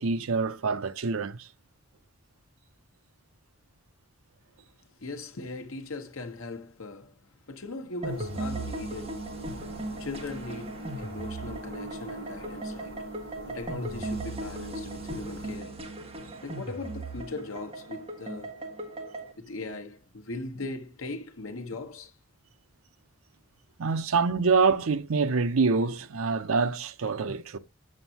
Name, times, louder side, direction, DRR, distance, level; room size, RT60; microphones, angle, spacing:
voice 1, 0.0-1.5 23.8-27.6, right 4 dB, 80° right, 0.6 m, -26 dB
voice 2, 5.0-7.1 7.5-9.2 10.0-13.1 13.5-15.8 16.4-18.6 19.4-22.1 27.3-27.4, left 2 dB, 75° left, 1.0 m, -39 dB
sound 1, 8.0-19.3, right 2 dB, 30° right, 1.5 m, -38 dB
sound 2, 8.0-15.6, right 1 dB, 45° right, 5.7 m, -43 dB
8.0 x 7.4 x 2.8 m
head